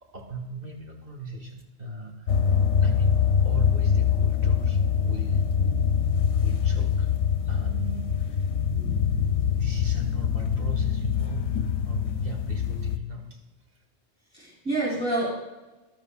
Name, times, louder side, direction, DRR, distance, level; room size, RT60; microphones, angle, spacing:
voice 1, 0.0-2.3 2.8-5.5 6.4-7.1 7.4-8.5 9.5-13.4, right 1 dB, 55° right, 1 dB, 1.9 m, -38 dB
sound 1, 2.3-13.0, left 7 dB, 80° left, 0.9 m, -24 dB
voice 2, 8.7-9.0 14.3-15.3, right 2 dB, 5° left, -7 dB, 2.9 m, -28 dB
13.0 x 12.0 x 2.3 m, 1.1 s
omnidirectional pair, 1.1 m